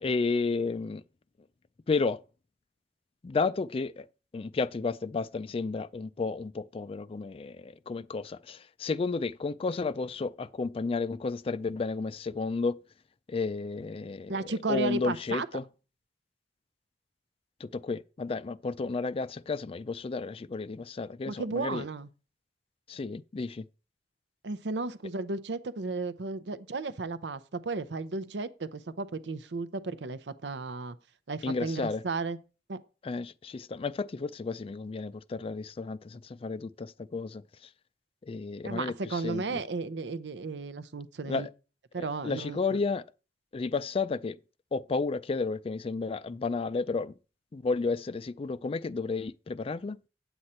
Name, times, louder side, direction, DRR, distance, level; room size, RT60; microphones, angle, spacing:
voice 1, 0.0-1.0 1.9-2.2 3.2-4.1 4.3-12.8 13.3-14.3 14.7-15.6 17.6-21.8 22.9-23.6 31.4-32.0 33.0-37.4 38.3-39.6 41.3-41.5 42.0-43.0 43.5-44.4 44.7-47.1 47.5-50.0, left 4 dB, 35° left, 0.4 m, -32 dB
voice 2, 14.3-15.5 21.3-22.1 24.4-31.0 31.3-32.4 32.7-32.8 38.6-41.5 41.9-42.8, right 3 dB, 80° right, 0.7 m, -34 dB
8.7 x 8.0 x 4.3 m
head